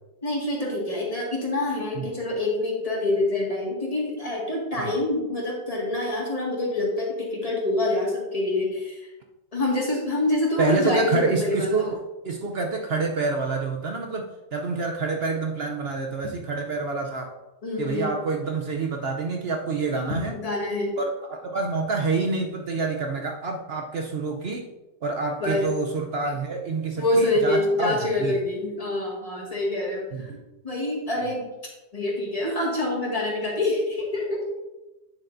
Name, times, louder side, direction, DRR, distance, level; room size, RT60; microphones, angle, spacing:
voice 1, 0.2-9.1 9.5-11.9 17.6-18.1 20.3-21.0 25.4-25.7 27.0-30.3 30.6-31.5 31.9-34.4, left 2 dB, 20° left, -3 dB, 1.9 m, -26 dB
voice 2, 10.6-12.0 12.2-17.3 17.8-20.4 21.0-24.7 25.0-28.3 30.1-30.2, right 3 dB, 65° right, 2 dB, 0.6 m, -27 dB
9.1 x 7.1 x 2.6 m, 1.1 s
omnidirectional pair, 1.8 m